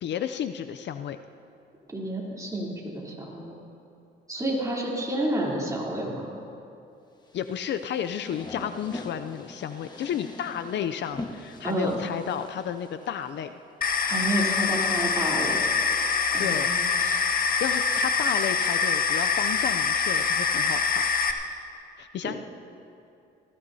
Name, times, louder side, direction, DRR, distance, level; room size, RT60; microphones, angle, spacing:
voice 1, 0.0-1.2 7.3-13.6 16.4-16.7 17.6-21.1 22.0-22.3, left 9 dB, 65° left, 9 dB, 0.5 m, -32 dB
voice 2, 1.9-3.6 4.3-6.3 11.6-12.0 14.0-15.6 16.3-17.2 22.2-22.3, right 1 dB, 15° right, -4 dB, 3.3 m, -30 dB
sound 1, 7.3-13.4, left 2 dB, 20° left, 1.3 m, -42 dB
sound 2, 13.8-21.3, left 5 dB, 45° left, 0.9 m, -25 dB
19.5 x 16.0 x 2.8 m, 2.6 s
cardioid pair, 90°, 20 cm